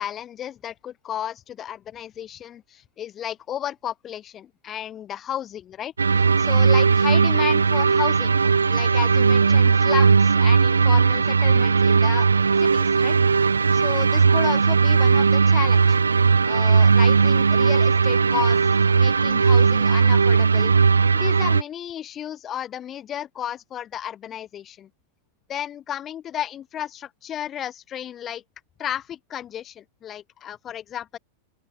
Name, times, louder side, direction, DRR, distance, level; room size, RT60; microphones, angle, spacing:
voice 1, 0.0-8.3 8.7-12.3 12.6-13.2 13.7-16.0 16.4-18.6 18.9-20.7 21.1-24.9 25.5-28.4 28.8-31.2, left 10 dB, 25° left, 2.7 m, -33 dB
sound 1, 6.0-21.6, right 5 dB, 75° right, 1.7 m, -18 dB
open air
figure-of-eight pair, 90°, 0 cm